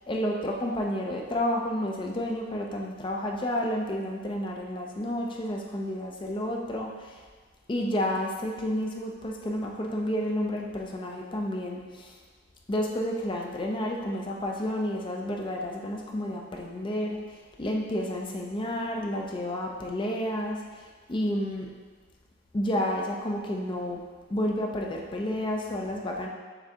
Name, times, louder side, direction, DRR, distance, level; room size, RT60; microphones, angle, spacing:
voice 1, 0.1-7.2 7.7-12.2 12.7-21.7 22.5-24.0 24.3-26.3, left 1 dB, 25° left, 0 dB, 0.4 m, -30 dB
5.9 x 3.2 x 2.8 m, 1.5 s
head